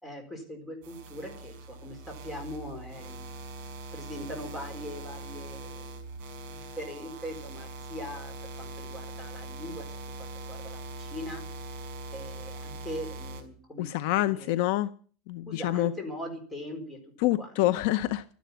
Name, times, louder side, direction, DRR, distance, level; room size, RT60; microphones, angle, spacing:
voice 1, 0.0-3.3 3.9-6.0 6.5-8.3 8.6-9.9 10.2-11.4 12.1-13.9 14.3-14.6 15.5-17.0 17.4-17.6, left 1 dB, 5° left, 2 dB, 4.3 m, -41 dB
sound 1, 0.8-13.4, right 2 dB, 55° right, 5.5 m, -42 dB
voice 2, 13.8-14.9 15.3-15.9 17.2-18.2, left 15 dB, 55° left, 15 dB, 0.6 m, -26 dB
12.5 x 10.5 x 8.6 m, 0.43 s
supercardioid pair, 170°, 0 cm